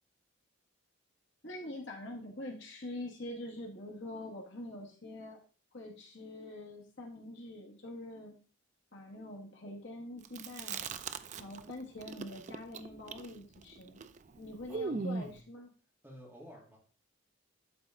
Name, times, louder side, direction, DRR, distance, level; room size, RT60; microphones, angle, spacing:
voice 1, 1.4-5.4 5.7-8.4 8.9-10.8 11.4-14.0 14.3-15.7, left 1 dB, 55° left, -1 dB, 1.8 m, -45 dB
Chewing mastication, 10.2-11.7 12.0-15.4, right 4 dB, 35° right, 0.4 m, -39 dB
voice 2, 14.7-15.4 16.0-16.8, equal, 10° right, -3 dB, 2.1 m, -52 dB
11.5 x 4.1 x 3.7 m, 0.37 s
head